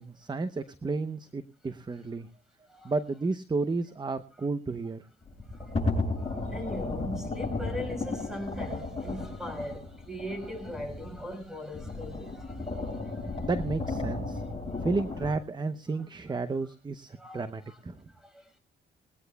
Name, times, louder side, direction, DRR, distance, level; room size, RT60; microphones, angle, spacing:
voice 1, 0.0-2.3 2.8-5.0 13.4-14.4 14.8-18.0, right 3 dB, 20° right, 0.8 m, -32 dB
sound 1, 5.2-11.4 11.7-15.3, left 3 dB, 25° left, 7.0 m, -34 dB
voice 2, 5.5-5.9 6.2-13.5 14.7-14.8 16.3-16.4 17.2-17.8 18.1-18.6, left 1 dB, ahead, 5.5 m, -41 dB
20.5 x 18.0 x 2.3 m
cardioid pair, 90°, 20 cm